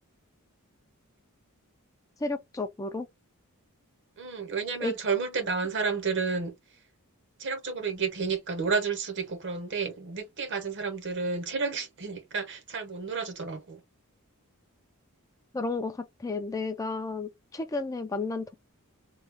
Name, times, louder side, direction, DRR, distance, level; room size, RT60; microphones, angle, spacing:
voice 1, 2.2-3.1 4.8-4.9 15.5-18.5, left 3 dB, 15° left, 0.3 m, -32 dB
voice 2, 4.2-6.5 7.4-13.8, right 5 dB, 55° right, 0.8 m, -31 dB
3.1 x 2.3 x 3.4 m
head